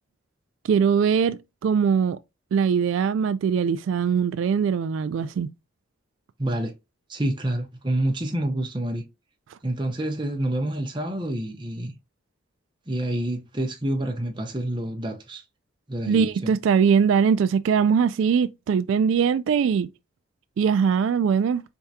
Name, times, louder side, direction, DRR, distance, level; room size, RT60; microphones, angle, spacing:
voice 1, 0.6-2.2 2.5-5.5 16.1-19.9 20.6-21.6, right 6 dB, 80° right, 0.3 m, -21 dB
voice 2, 6.4-6.7 7.1-9.0 9.6-11.9 12.9-15.4 15.9-16.5, right 1 dB, 25° right, 0.8 m, -28 dB
4.6 x 3.5 x 2.7 m
head